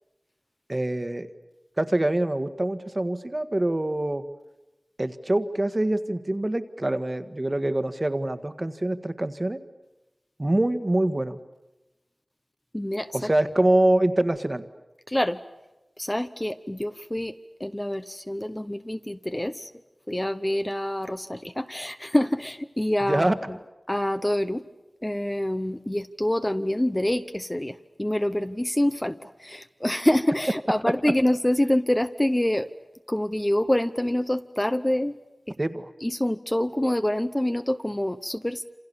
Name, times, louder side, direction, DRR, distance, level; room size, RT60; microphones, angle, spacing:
voice 1, 0.7-1.3 1.8-4.2 5.0-9.6 10.4-11.4 13.1-14.6 23.1-23.4 35.6-35.9, right 1 dB, 30° right, 10 dB, 1.7 m, -25 dB
voice 2, 12.7-13.3 15.1-15.4 16.0-19.7 20.1-23.6 23.9-24.6 25.0-32.7 33.1-35.1 35.5-35.6 36.0-38.6, left 1 dB, 20° left, 9 dB, 1.0 m, -26 dB
28.0 x 27.5 x 7.1 m, 1.0 s
wide cardioid pair, 65°, 0 cm